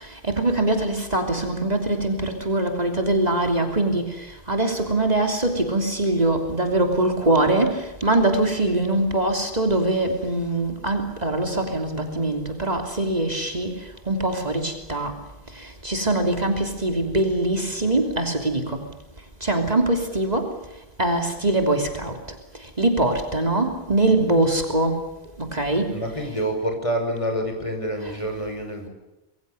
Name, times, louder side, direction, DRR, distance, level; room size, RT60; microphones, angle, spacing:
voice 1, 0.3-4.1 4.5-13.7 14.1-15.1 15.8-18.8 19.4-20.5 21.0-22.1 22.8-25.0 25.4-25.9, right 2 dB, 40° right, 4 dB, 3.4 m, -22 dB
voice 2, 25.9-28.9, right 1 dB, 30° left, 5 dB, 5.7 m, -27 dB
26.5 x 23.0 x 6.9 m, 1.0 s
omnidirectional pair, 1.1 m